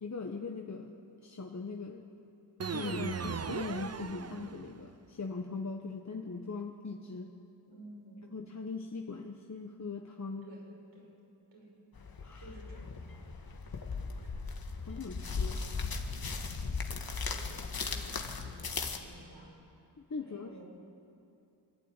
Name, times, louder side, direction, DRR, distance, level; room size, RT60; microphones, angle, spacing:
voice 1, 0.0-0.9 1.2-2.0 2.7-7.3 8.3-10.5 12.2-12.5 14.9-15.8 20.1-20.6, left 4 dB, 40° left, 1 dB, 1.4 m, -40 dB
sound 1, 2.6-4.9, right 5 dB, 35° right, 0.8 m, -38 dB
voice 2, 7.7-8.4 10.4-10.6 10.9-11.1 11.5-11.7 12.4-12.9 17.3-19.5 20.2-20.7, right 2 dB, 90° right, -3 dB, 7.0 m, -52 dB
sound 2, 12.0-19.0, left 4 dB, 55° left, 1.8 m, -37 dB
26.0 x 12.0 x 9.1 m, 2.7 s
cardioid pair, 70°, 43 cm